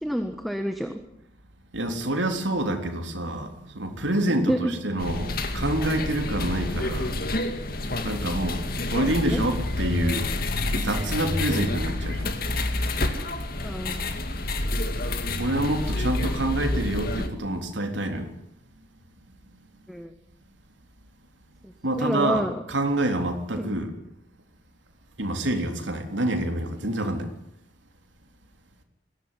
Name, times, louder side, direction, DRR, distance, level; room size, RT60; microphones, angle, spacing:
voice 1, 0.0-0.9 4.5-4.6 9.3-9.4 13.6-14.2 19.9-20.1 22.0-22.6 23.6-23.7, equal, ahead, 7 dB, 1.3 m, -28 dB
voice 2, 1.7-12.8 15.4-18.3 19.5-19.6 21.8-24.0 25.2-27.3, right 1 dB, 75° right, 4 dB, 3.6 m, -27 dB
sound 1, 5.0-17.3, left 2 dB, 50° left, 2.2 m, -28 dB
21.5 x 16.5 x 10.0 m, 0.81 s
head